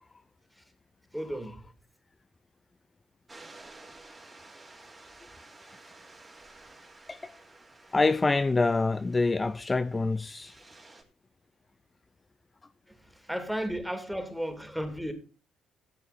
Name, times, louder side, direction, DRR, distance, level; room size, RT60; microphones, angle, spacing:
voice 1, 1.1-1.7 12.9-15.1, equal, ahead, 2.7 m, -34 dB
sound 1, 3.3-11.0, right 2 dB, 25° right, 2.9 m, -53 dB
voice 2, 7.9-10.6, left 3 dB, 25° left, 0.5 m, -26 dB
13.5 x 7.8 x 4.2 m
hypercardioid pair, 50°, 0 cm